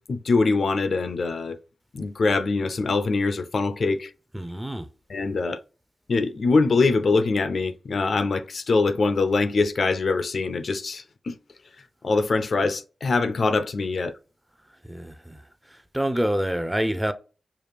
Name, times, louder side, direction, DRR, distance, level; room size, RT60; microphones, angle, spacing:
voice 1, 0.1-1.6 1.9-4.1 5.1-5.6 6.1-11.4 12.0-14.1, left 3 dB, 65° left, 0.4 m, -23 dB
voice 2, 4.3-4.9 14.8-15.4 15.7-17.1, equal, 10° right, 0.5 m, -27 dB
4.8 x 2.4 x 3.4 m
cardioid pair, 55°, 0 cm